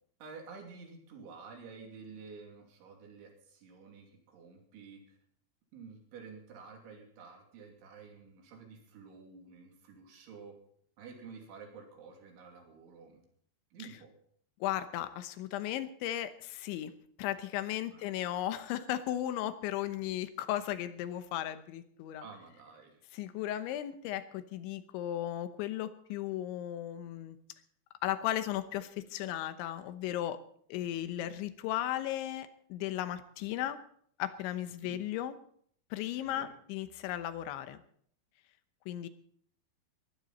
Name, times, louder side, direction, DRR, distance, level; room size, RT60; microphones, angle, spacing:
voice 1, 0.2-5.2 5.7-10.6 11.0-13.3 13.7-14.1 17.9-18.1 22.2-23.0 34.8-35.0 36.2-36.5, right 5 dB, 80° right, 2 dB, 5.3 m, -50 dB
voice 2, 14.6-16.9 17.2-22.2 23.1-27.4 28.0-30.4 30.7-33.8 34.2-35.3 35.9-37.8 38.9-39.1, left 12 dB, 85° left, 11 dB, 3.3 m, -36 dB
20.5 x 14.5 x 4.2 m, 0.63 s
omnidirectional pair, 5.3 m